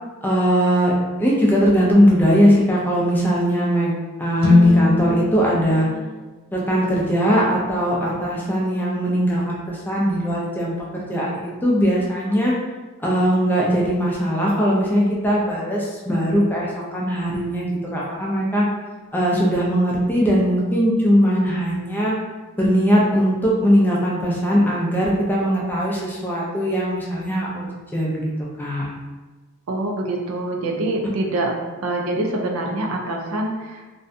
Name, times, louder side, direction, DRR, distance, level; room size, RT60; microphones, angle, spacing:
voice 1, 0.2-0.9 1.2-3.9 4.2-5.9 6.5-12.5 13.0-18.7 19.1-22.1 22.6-28.2 28.6-28.9, equal, 10° left, -5 dB, 0.4 m, -20 dB
sound 1, 4.4-8.5, left 3 dB, 65° left, 0.4 m, -22 dB
voice 2, 29.7-31.5 31.8-33.9, right 2 dB, 75° right, 1 dB, 0.4 m, -25 dB
2.5 x 2.1 x 2.5 m, 1.2 s
head